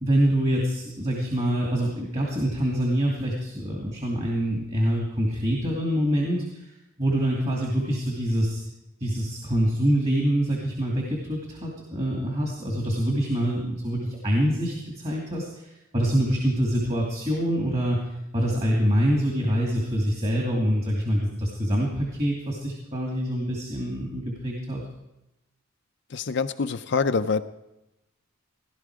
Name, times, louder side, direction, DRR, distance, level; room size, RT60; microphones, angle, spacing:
voice 1, 0.0-8.6 9.0-18.0 18.3-24.8, equal, 30° right, -2 dB, 2.5 m, -25 dB
voice 2, 26.1-27.4, left 4 dB, 55° left, 8 dB, 0.5 m, -25 dB
17.5 x 12.0 x 4.9 m, 0.92 s
head